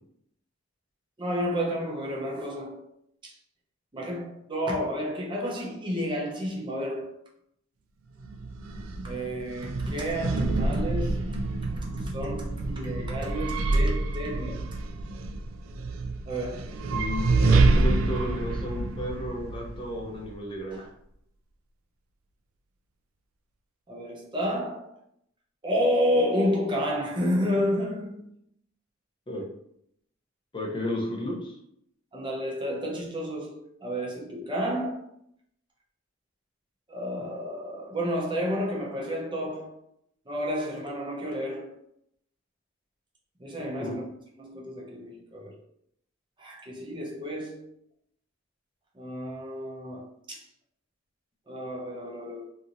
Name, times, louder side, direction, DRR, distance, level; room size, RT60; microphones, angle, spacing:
voice 1, 1.2-2.9 3.2-3.3 3.9-7.2 9.0-11.2 11.8-14.6 16.3-16.7 20.7-20.9 23.9-24.9 25.6-28.3 32.1-35.0 36.9-39.7 40.3-41.8 43.4-44.0 44.4-45.6 46.4-47.7 49.0-50.4 51.5-52.5, equal, 25° right, 0.6 m, -30 dB
sound 1, 8.2-20.3, right 3 dB, 90° right, 0.3 m, -27 dB
voice 2, 16.9-20.9 29.3-29.4 30.5-31.6 43.8-43.9, left 1 dB, 25° left, 0.6 m, -33 dB
2.9 x 2.6 x 2.5 m
head